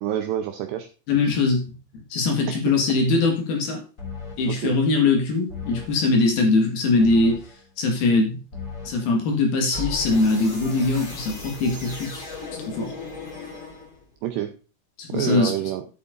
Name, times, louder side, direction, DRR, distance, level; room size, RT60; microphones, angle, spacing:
voice 1, 0.0-0.9 2.5-2.6 4.5-4.8 14.2-14.6 15.1-15.9, right 11 dB, 80° right, 6 dB, 2.4 m, -27 dB
voice 2, 1.1-1.6 2.1-3.8 4.4-7.4 7.8-8.4 8.9-12.2 12.7-12.9 15.0-15.5, left 3 dB, 60° left, 2 dB, 3.4 m, -21 dB
sound 1, 4.0-4.5 5.5-6.0 7.0-7.6 8.5-9.1 9.7-14.1, left 3 dB, 20° left, 3.0 m, -36 dB
11.0 x 7.6 x 3.9 m, 0.36 s
omnidirectional pair, 5.5 m